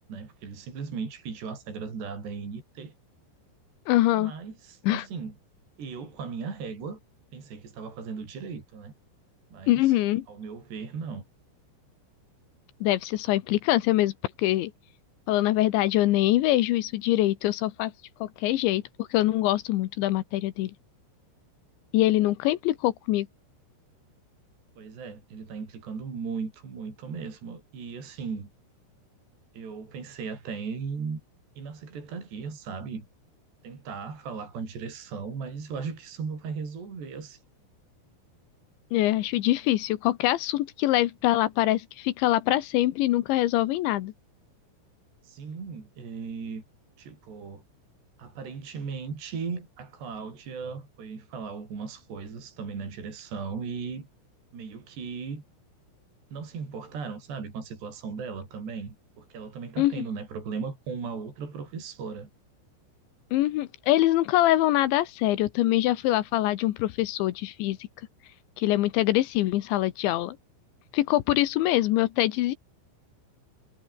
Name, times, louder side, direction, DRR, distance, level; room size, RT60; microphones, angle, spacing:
voice 1, 0.1-2.9 4.2-5.3 5.8-7.0 7.3-8.9 9.5-10.0 10.3-11.2 24.8-28.5 29.5-31.2 31.6-33.1 33.6-37.4 45.2-46.6 47.0-47.6 48.2-54.1 54.5-55.4 56.3-62.3, right 5 dB, 55° right, 8.0 m, -37 dB
voice 2, 3.9-4.3 4.8-5.0 9.7-10.3 12.8-14.1 14.4-14.7 15.3-17.9 18.2-20.7 21.9-23.3 38.9-44.1 59.8-60.1 63.3-67.8 68.6-70.4 70.9-72.6, left 15 dB, 75° left, 3.1 m, -24 dB
omnidirectional pair, 5.8 m